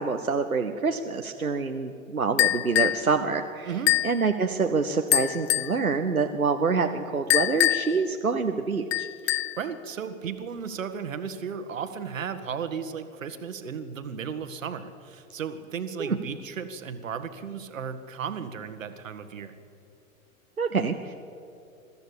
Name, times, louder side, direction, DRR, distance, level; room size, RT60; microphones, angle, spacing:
voice 1, 0.0-3.7 4.0-9.1 16.0-16.2 20.6-21.1, right 4 dB, 90° right, 4 dB, 1.0 m, -26 dB
sound 1, 2.4-3.0 3.9-4.2 5.1-5.8 7.3-8.0 8.9-9.6, left 15 dB, 50° left, 0.6 m, -24 dB
voice 2, 3.6-3.9 9.2-19.5, right 7 dB, 65° right, 9 dB, 1.6 m, -35 dB
22.5 x 14.0 x 8.6 m, 2.7 s
figure-of-eight pair, 100°, 41 cm